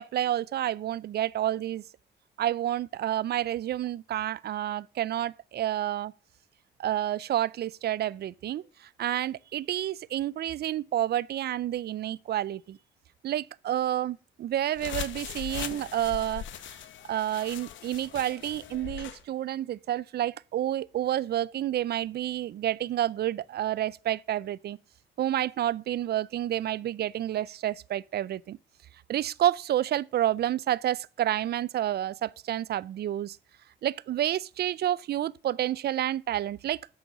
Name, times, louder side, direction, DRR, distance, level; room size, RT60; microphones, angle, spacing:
voice 1, 0.0-1.8 2.4-6.1 6.8-12.8 13.2-16.8 17.1-24.8 25.2-28.6 29.1-33.4 33.8-36.8, right 12 dB, 55° right, 0.4 m, -29 dB
sound 1, 14.7-19.2, left 11 dB, 70° left, 0.9 m, -40 dB
8.6 x 7.1 x 6.0 m
cardioid pair, 90°, 20 cm